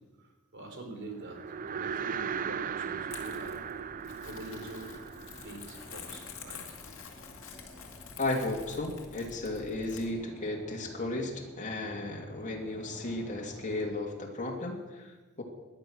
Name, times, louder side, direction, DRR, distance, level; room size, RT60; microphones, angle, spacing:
voice 1, 0.2-1.4 1.7-3.6 4.2-4.9 5.4-6.6, right 2 dB, 60° right, 3 dB, 3.7 m, -44 dB
sound 1, 1.1-13.9, left 1 dB, 15° left, 2.3 m, -52 dB
sound 2, 1.2-6.7, right 7 dB, 40° right, 0.4 m, -38 dB
Crumpling crinkling, 3.1-10.1, left 6 dB, 65° left, 2.3 m, -48 dB
voice 2, 8.2-15.4, left 2 dB, 35° left, -1 dB, 2.6 m, -34 dB
18.5 x 11.5 x 6.3 m, 1.3 s
head